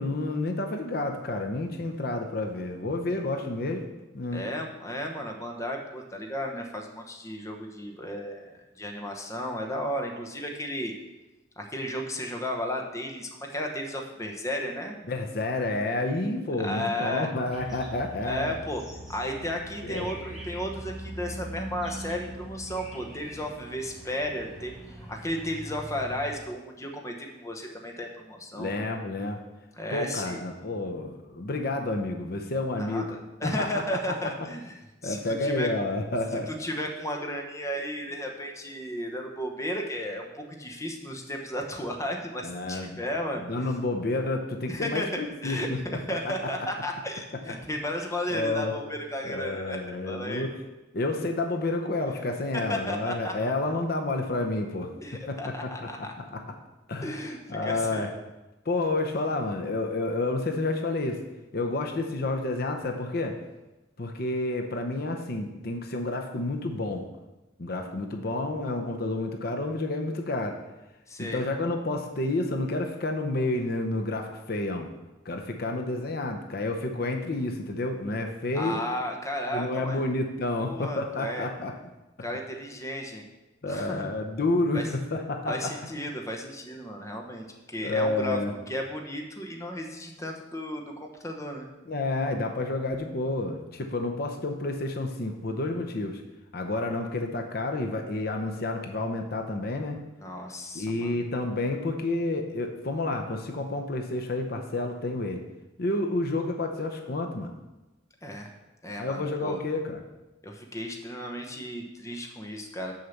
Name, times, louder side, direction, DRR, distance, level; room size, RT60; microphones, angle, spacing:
voice 1, 0.0-3.9 4.1-4.4 15.1-18.6 19.8-20.1 28.5-29.4 29.9-33.1 33.4-33.7 34.2-34.3 35.0-36.5 42.4-43.0 43.4-45.8 46.2-46.5 48.3-48.7 49.2-50.5 50.9-54.9 55.3-56.4 56.9-57.2 57.5-58.1 58.7-61.2 61.5-63.4 64.0-67.0 67.6-70.6 71.2-74.9 75.2-78.8 79.5-81.7 83.6-85.7 87.8-88.5 91.9-96.2 96.5-100.0 100.7-105.4 105.8-107.5 109.0-110.0, left 2 dB, 55° left, 4 dB, 0.7 m, -30 dB
voice 2, 4.3-10.9 11.6-15.0 16.6-17.3 18.2-18.8 19.1-28.7 29.8-30.4 32.8-35.7 36.5-43.7 44.7-49.8 50.1-50.5 52.7-53.5 55.0-56.1 57.0-58.1 71.1-71.4 78.5-80.0 80.5-81.5 82.2-83.2 83.7-84.0 84.7-84.9 85.5-88.4 88.7-91.7 100.2-101.1 108.2-108.5 108.8-109.6 110.4-112.9, equal, 15° left, 2 dB, 0.9 m, -34 dB
sound 1, 17.5-26.3, equal, ahead, 1.8 m, -42 dB
6.5 x 5.6 x 7.1 m, 1.0 s
head